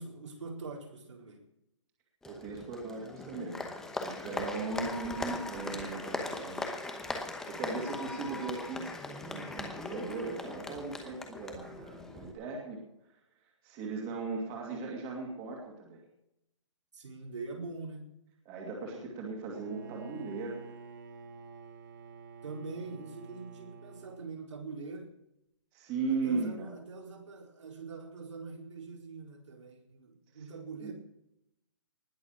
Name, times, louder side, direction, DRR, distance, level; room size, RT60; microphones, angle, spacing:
voice 1, 0.0-1.4 16.9-18.0 22.4-25.1 26.1-30.9, right 3 dB, 70° right, 1 dB, 4.4 m, -43 dB
Applause, 2.2-12.3, left 2 dB, 5° left, 1.0 m, -39 dB
voice 2, 2.2-3.6 4.0-6.7 7.5-8.9 9.2-12.8 13.6-16.0 18.5-20.7 25.7-26.8 30.8-30.9, right 4 dB, 20° right, -1 dB, 2.5 m, -37 dB
Bowed string instrument, 19.5-24.3, right 5 dB, 40° right, 1.7 m, -49 dB
19.5 x 7.1 x 6.3 m, 0.83 s
hypercardioid pair, 175°, 16 cm